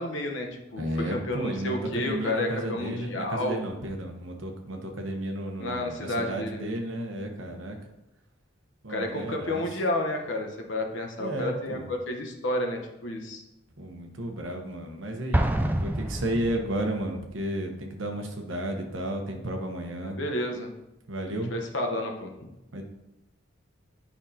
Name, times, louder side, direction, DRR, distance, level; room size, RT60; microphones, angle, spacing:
voice 1, 0.0-3.6 5.6-6.7 8.9-13.4 20.0-20.7 21.5-22.5, left 1 dB, 65° left, 2 dB, 1.0 m, -31 dB
voice 2, 0.8-7.8 8.8-9.6 11.2-11.9 13.8-20.2 21.1-21.5 22.7-22.8, right 1 dB, 75° right, 3 dB, 1.1 m, -33 dB
Explosion, 15.3-17.1, right 1 dB, 10° right, 0.3 m, -27 dB
8.7 x 5.5 x 2.8 m, 0.94 s
head